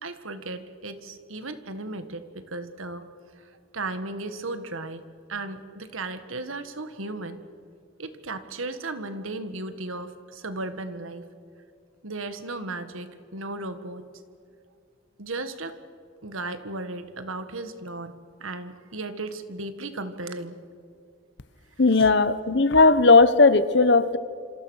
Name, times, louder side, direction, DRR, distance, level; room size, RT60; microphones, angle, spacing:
voice 1, 0.0-3.1 3.4-5.0 5.3-7.4 8.0-11.2 12.0-14.0 15.2-15.8 16.2-18.1 18.4-20.6 22.0-22.1, right 2 dB, 85° right, 10 dB, 1.7 m, -35 dB
voice 2, 21.8-24.2, left 3 dB, 55° left, 14 dB, 1.0 m, -17 dB
27.5 x 26.0 x 6.5 m, 2.2 s
head